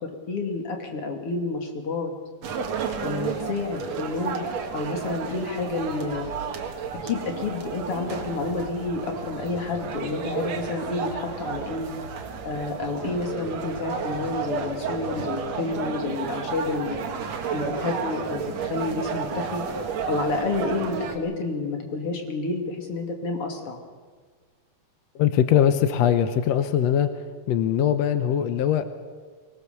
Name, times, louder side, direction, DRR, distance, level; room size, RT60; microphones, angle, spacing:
voice 1, 0.0-2.1 3.0-4.5 4.7-6.3 7.0-11.9 12.4-17.0 17.5-19.6 20.1-23.8, left 3 dB, 40° left, 3 dB, 3.2 m, -29 dB
sound 1, 2.4-21.2, right 6 dB, 55° right, 2.5 m, -32 dB
voice 2, 25.2-27.1 27.5-28.9, left 9 dB, 80° left, 10 dB, 1.5 m, -21 dB
24.5 x 19.0 x 6.9 m, 1.5 s
omnidirectional pair, 4.3 m